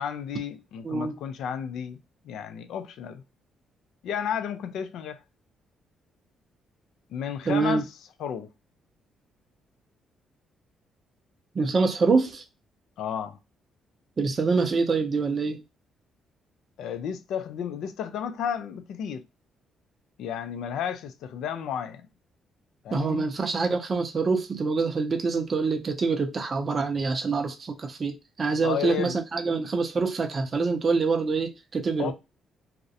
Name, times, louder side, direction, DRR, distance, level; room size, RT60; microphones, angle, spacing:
voice 1, 0.0-2.0 2.2-3.2 4.0-5.2 7.1-7.9 8.2-8.5 13.0-13.4 16.8-19.2 20.2-22.0 22.8-23.3 28.6-29.2 32.0-32.1, left 8 dB, 80° left, 0.3 m, -32 dB
voice 2, 0.8-1.2 7.5-7.8 11.6-12.4 14.2-15.6 22.9-32.1, right 4 dB, 40° right, 0.4 m, -25 dB
2.4 x 2.0 x 2.6 m
cardioid pair, 90°, 0 cm